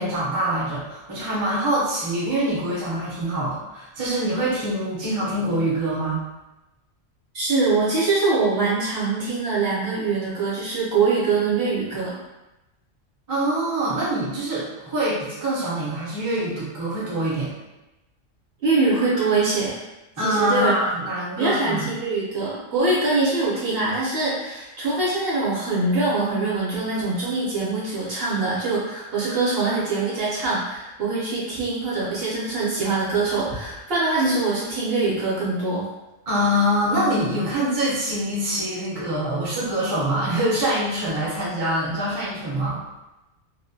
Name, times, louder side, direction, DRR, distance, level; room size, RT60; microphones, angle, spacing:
voice 1, 0.0-6.2 13.3-17.5 20.2-21.9 36.3-42.8, right 1 dB, 25° right, -8 dB, 0.5 m, -24 dB
voice 2, 7.3-12.2 18.6-19.8 20.2-20.8 21.4-35.9, right 3 dB, 55° right, -7 dB, 0.8 m, -23 dB
2.3 x 2.1 x 2.6 m, 1.0 s
omnidirectional pair, 1.3 m